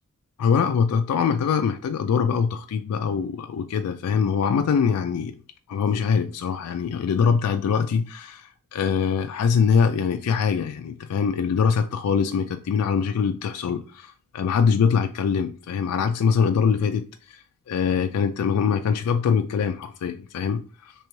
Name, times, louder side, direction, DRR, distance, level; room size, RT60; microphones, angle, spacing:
voice 1, 0.4-5.3 5.7-20.9, left 6 dB, 75° left, 0.3 m, -23 dB
3.0 x 3.0 x 4.4 m
head